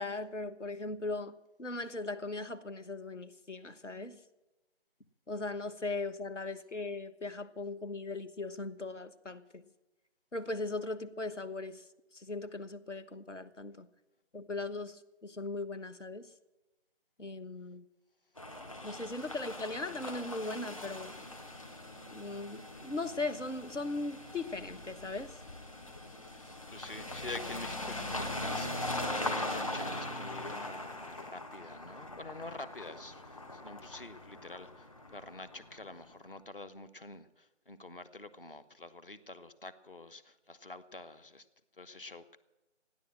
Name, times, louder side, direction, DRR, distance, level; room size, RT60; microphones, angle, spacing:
voice 1, 0.0-4.2 5.3-9.6 10.3-11.8 12.1-13.9 14.3-16.3 17.2-17.8 18.8-21.1 22.1-25.4, left 3 dB, 75° left, 10 dB, 1.4 m, -39 dB
sound 1, 18.4-36.0, left 1 dB, 25° left, 1.7 m, -41 dB
voice 2, 26.2-41.5 41.7-42.4, left 2 dB, 45° left, 10 dB, 1.1 m, -47 dB
15.5 x 10.5 x 7.6 m, 1.0 s
figure-of-eight pair, 170°, 37 cm